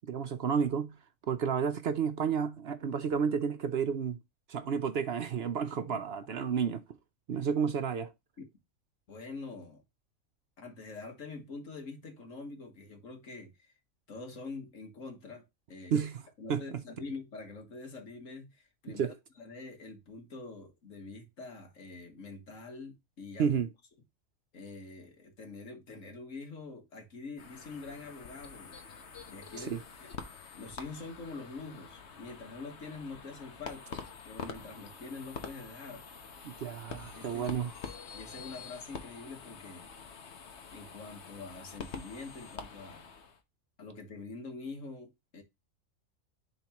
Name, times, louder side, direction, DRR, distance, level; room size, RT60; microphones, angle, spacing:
voice 1, 0.1-1.0 1.3-4.2 4.5-6.8 7.3-8.1 15.9-16.2 16.5-16.8 18.9-19.1 23.4-23.7 29.7-29.8 36.4-37.7, right 7 dB, 55° right, 0.8 m, -31 dB
voice 2, 5.7-6.4 8.4-8.5 9.1-9.8 10.6-13.7 14.1-16.0 16.4-23.6 24.5-28.7 29.3-30.1 30.6-36.1 37.1-37.4 38.1-39.9 40.7-43.0 43.8-45.4, left 3 dB, 70° left, 1.9 m, -45 dB
sound 1, 27.4-43.4, left 5 dB, 55° left, 1.3 m, -46 dB
10.5 x 3.8 x 2.9 m
omnidirectional pair, 1.4 m